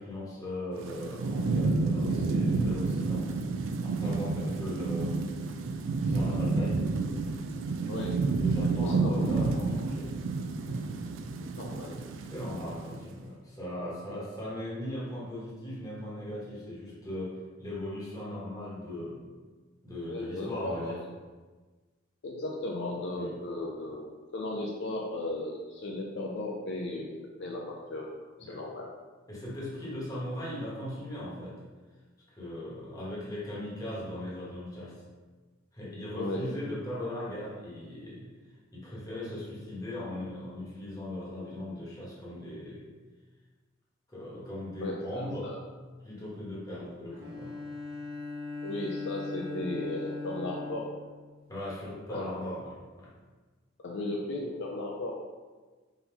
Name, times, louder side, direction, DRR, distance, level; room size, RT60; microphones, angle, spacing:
voice 1, 0.0-3.3 3.8-5.2 6.0-6.8 8.3-10.3 10.6-10.8 12.3-19.3 19.8-21.0 23.2-23.4 28.4-28.6 29.3-31.6 32.3-35.0 35.7-38.4 38.7-42.9 44.1-45.5 46.0-47.6 51.5-53.1 54.0-54.1, left 1 dB, 15° left, -6 dB, 1.1 m, -38 dB
Thunderstorm / Rain, 0.8-13.0, right 3 dB, 65° right, 0.3 m, -30 dB
voice 2, 8.8-9.3 11.6-11.9 20.1-21.0 22.2-24.1 24.3-28.1 28.5-28.9 36.2-36.4 44.8-45.6 48.6-50.9 52.1-52.3 53.8-55.2, left 2 dB, 60° left, -1 dB, 0.5 m, -35 dB
Bowed string instrument, 47.1-51.7, left 3 dB, 25° right, 0.9 m, -39 dB
4.1 x 3.9 x 2.8 m, 1.3 s
head